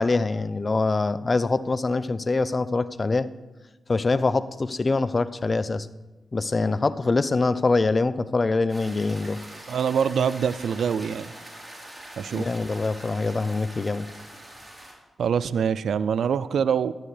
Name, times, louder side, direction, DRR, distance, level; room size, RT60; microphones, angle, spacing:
voice 1, 0.0-3.3 3.9-5.9 6.3-9.4 12.3-14.1, left 3 dB, 45° left, 15 dB, 0.6 m, -24 dB
sound 1, 8.7-14.9, right 1 dB, 25° right, 3.8 m, -43 dB
voice 2, 9.7-11.3 12.2-12.5 15.2-16.9, right 7 dB, 80° right, 17 dB, 0.3 m, -24 dB
14.0 x 11.0 x 3.3 m, 1.1 s
supercardioid pair, 45°, 0 cm